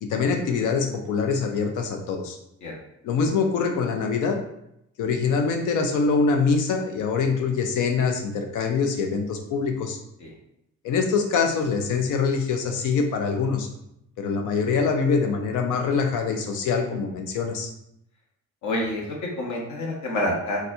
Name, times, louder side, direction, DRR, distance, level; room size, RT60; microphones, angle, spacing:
voice 1, 0.0-2.4 3.0-4.4 5.0-10.0 10.8-13.7 14.2-17.7, left 5 dB, 85° left, 4 dB, 0.6 m, -24 dB
voice 2, 18.6-20.6, left 1 dB, 70° left, -1 dB, 1.0 m, -28 dB
4.0 x 2.3 x 2.7 m, 0.78 s
cardioid pair, 90°, 30 cm